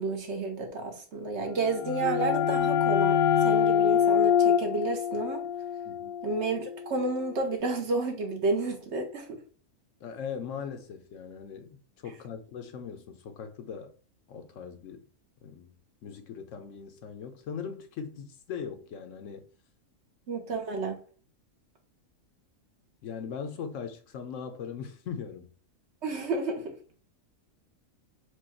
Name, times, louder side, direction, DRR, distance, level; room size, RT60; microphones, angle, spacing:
voice 1, 0.0-5.4 6.2-9.4 20.3-20.9 26.0-26.7, right 3 dB, 55° right, 1.1 m, -31 dB
sound 1, 1.5-7.0, left 8 dB, 90° left, 1.1 m, -25 dB
voice 2, 5.8-6.2 10.0-13.9 14.3-15.1 15.4-15.7 16.0-19.5 23.0-25.5, left 7 dB, 70° left, 0.9 m, -40 dB
4.7 x 2.3 x 4.2 m
omnidirectional pair, 1.5 m